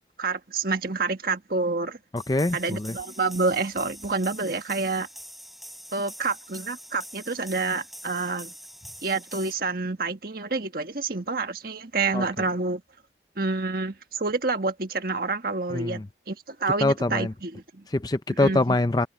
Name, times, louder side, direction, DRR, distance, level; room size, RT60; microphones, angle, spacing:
voice 1, 0.2-2.0 2.5-5.1 5.9-8.5 9.0-12.8 13.4-16.0 16.3-17.8 18.4-18.8, right 3 dB, 55° right, 1.6 m, -28 dB
voice 2, 2.1-2.9 12.1-12.2 15.7-16.0 16.8-17.3 17.9-19.1, left 2 dB, 20° left, 0.5 m, -24 dB
sound 1, 2.2-9.5, equal, ahead, 5.7 m, -44 dB
head